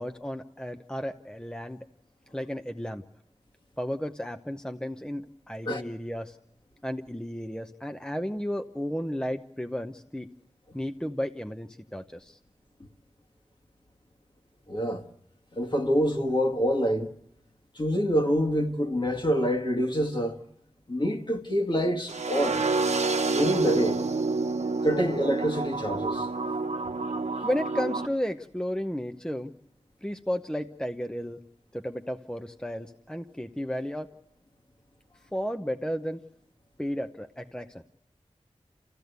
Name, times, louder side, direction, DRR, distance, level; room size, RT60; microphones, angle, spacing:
voice 1, 0.0-1.8 2.3-3.0 3.8-6.4 6.8-10.3 10.7-12.4 27.4-29.5 30.0-31.4 31.7-34.1 35.3-36.2 36.8-37.8, equal, 5° left, 0.8 m, -33 dB
voice 2, 14.7-15.0 15.5-17.1 17.8-20.3 20.9-22.6 23.3-24.0 24.8-26.3, equal, 45° left, 1.8 m, -26 dB
sound 1, 22.1-28.1, right 3 dB, 80° right, 0.9 m, -28 dB
27.5 x 15.5 x 8.1 m
cardioid pair, 45°, 11 cm